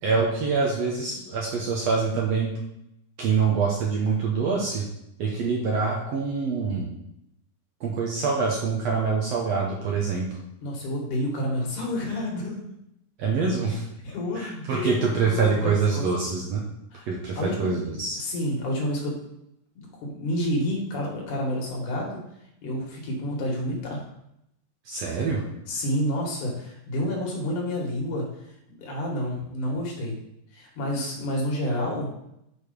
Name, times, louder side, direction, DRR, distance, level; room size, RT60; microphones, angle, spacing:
voice 1, 0.0-2.5 3.2-4.8 5.2-6.9 7.8-10.3 13.2-13.8 14.3-16.6 17.1-18.2 24.8-25.4, right 5 dB, 65° right, -2 dB, 1.7 m, -25 dB
voice 2, 10.6-12.6 14.0-16.1 16.9-17.1 17.4-17.7 18.2-19.1 19.8-22.2 22.6-24.0 25.7-28.3 28.8-30.2 30.5-32.1, left 1 dB, 65° left, -1 dB, 3.0 m, -29 dB
6.7 x 4.7 x 5.1 m, 0.80 s
omnidirectional pair, 3.9 m